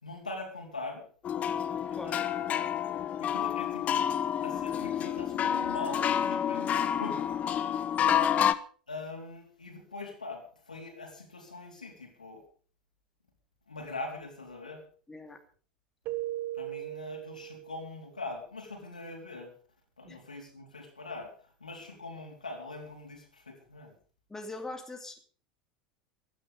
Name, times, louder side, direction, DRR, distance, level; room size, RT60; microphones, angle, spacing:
voice 1, 0.0-1.1 1.9-2.2 3.2-7.2 8.9-12.4 13.7-14.8 16.5-19.5 20.0-24.0, left 2 dB, 85° left, 2 dB, 4.1 m, -42 dB
sound 1, 1.2-8.5, left 9 dB, 35° left, 1.0 m, -29 dB
voice 2, 8.0-8.3 15.1-15.4 20.0-20.2 24.3-25.2, left 2 dB, 10° left, 4 dB, 2.7 m, -42 dB
Keyboard (musical), 16.1-18.1, right 15 dB, 50° right, 0.8 m, -38 dB
15.5 x 12.5 x 5.4 m, 0.43 s
figure-of-eight pair, 75°, 4 cm